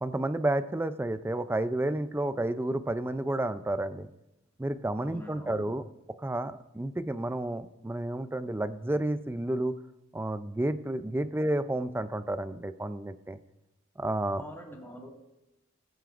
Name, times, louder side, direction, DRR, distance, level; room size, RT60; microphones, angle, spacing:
voice 1, 0.0-4.1 4.6-5.8 6.2-9.7 10.1-13.4 14.0-14.4, right 1 dB, 10° right, 12 dB, 0.4 m, -31 dB
voice 2, 5.0-5.8 14.4-15.1, left 1 dB, 10° left, -1 dB, 1.9 m, -45 dB
19.5 x 9.1 x 2.5 m, 0.93 s
head